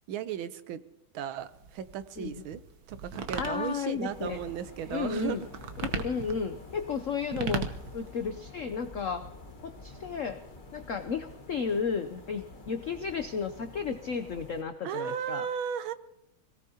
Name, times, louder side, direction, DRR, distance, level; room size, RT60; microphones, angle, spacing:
voice 1, 0.1-0.8 1.1-2.6 2.9-5.5 14.8-15.9, right 8 dB, 75° right, 12 dB, 1.5 m, -35 dB
sound 1, 1.4-8.3, right 5 dB, 55° right, 1.3 m, -38 dB
voice 2, 3.4-4.4 4.9-5.4 6.0-7.6 7.9-9.2 9.6-10.4 10.7-15.5, left 6 dB, 75° left, 8 dB, 0.7 m, -33 dB
sound 2, 4.1-14.6, left 2 dB, 25° left, 1.3 m, -48 dB
25.0 x 18.0 x 2.9 m, 0.83 s
omnidirectional pair, 2.3 m